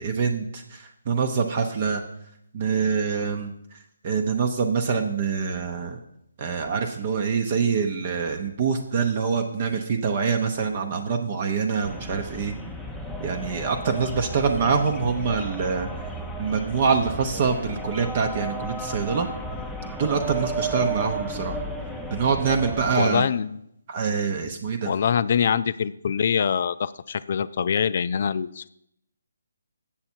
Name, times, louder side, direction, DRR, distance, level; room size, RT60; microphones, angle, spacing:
voice 1, 0.0-2.0 2.5-3.5 4.0-6.0 6.4-12.5 13.2-15.9 16.4-19.3 20.0-21.6 22.1-23.2 23.9-24.9, right 5 dB, 35° right, 4 dB, 0.7 m, -25 dB
sound 1, 11.8-23.0, right 2 dB, ahead, 0.6 m, -33 dB
voice 2, 23.0-23.6 24.9-28.7, left 7 dB, 50° left, 16 dB, 0.3 m, -24 dB
7.6 x 7.1 x 4.4 m, 0.76 s
figure-of-eight pair, 150°, 0 cm